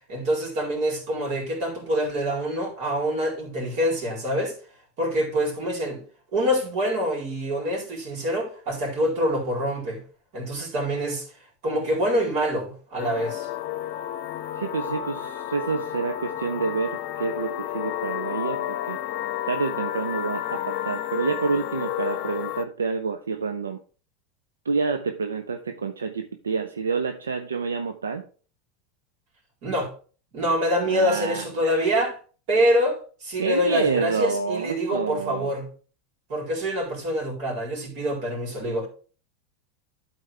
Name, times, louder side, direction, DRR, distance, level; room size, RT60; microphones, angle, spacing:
voice 1, 0.1-4.5 5.0-6.0 6.3-10.0 10.3-11.2 11.6-13.5 29.6-29.9 30.3-32.2 32.5-35.7 36.3-38.9, equal, 55° right, 4.0 m, -25 dB
sound 1, 13.0-22.6, left 12 dB, 55° left, 0.7 m, -31 dB
voice 2, 14.6-19.0 19.5-23.8 24.6-28.2 30.9-31.9 33.4-35.5, right 5 dB, 85° right, 0.6 m, -28 dB
12.0 x 4.5 x 3.4 m
hypercardioid pair, 90°, 0 cm